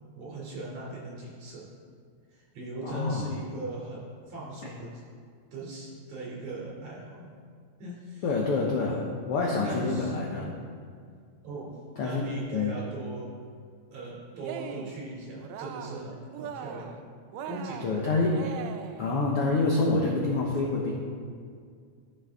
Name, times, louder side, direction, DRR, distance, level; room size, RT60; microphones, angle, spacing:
voice 1, 0.2-1.6 2.3-4.9 5.5-7.3 7.8-8.3 9.6-10.6 11.4-11.8 12.0-13.3 13.9-16.9 17.5-18.2, right 2 dB, 55° right, -5 dB, 3.8 m, -39 dB
voice 2, 2.8-3.3 8.2-9.0 9.3-10.5 12.0-12.2 12.5-12.7 17.8-18.3 19.0-20.9, left 3 dB, 70° left, -2 dB, 1.4 m, -27 dB
Cheering, 14.3-15.0 15.4-16.1 16.3-17.0 17.3-19.1, right 8 dB, 80° right, 1.6 m, -40 dB
14.0 x 6.2 x 3.6 m, 2.1 s
omnidirectional pair, 3.5 m